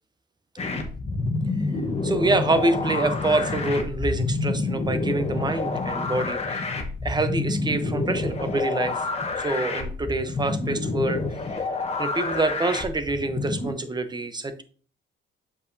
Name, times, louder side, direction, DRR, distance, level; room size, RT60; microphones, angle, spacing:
sound 1, 0.6-13.7, left 3 dB, 30° left, 1.2 m, -28 dB
voice 1, 2.0-9.0 9.4-11.2 11.5-11.7 12.0-14.6, right 2 dB, 20° right, 9 dB, 0.9 m, -26 dB
7.3 x 5.2 x 2.7 m, 0.41 s
cardioid pair, 90°, 20 cm